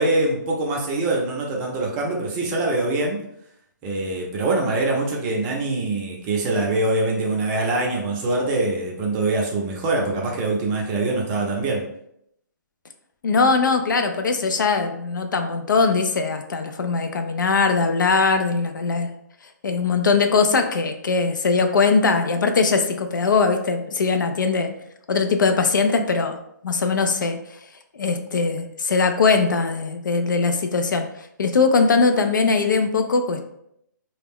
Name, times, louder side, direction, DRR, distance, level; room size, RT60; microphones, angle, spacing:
voice 1, 0.0-3.2 3.8-11.9, right 2 dB, 20° right, -1 dB, 0.5 m, -23 dB
voice 2, 13.2-19.1 19.6-24.7 25.1-26.4 26.6-27.4 28.0-31.0 31.4-33.4, left 4 dB, 80° left, 6 dB, 0.4 m, -20 dB
2.3 x 2.1 x 3.4 m, 0.75 s
hypercardioid pair, 150°, 10 cm